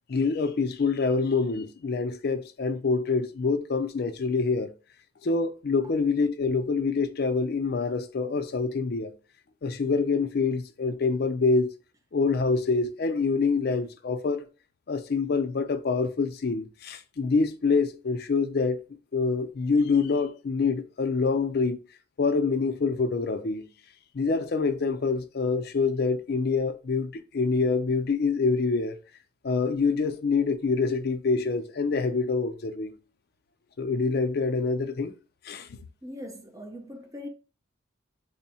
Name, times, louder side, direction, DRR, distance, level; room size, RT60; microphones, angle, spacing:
voice 1, 0.1-4.7 5.2-9.1 9.6-11.7 12.1-14.5 14.9-18.8 19.1-21.8 22.2-23.7 24.1-29.0 29.4-33.0 33.8-35.1 35.4-35.7, left 4 dB, 50° left, 0.4 m, -26 dB
voice 2, 36.0-37.3, left 1 dB, 15° right, 0.5 m, -40 dB
3.5 x 2.1 x 4.1 m
head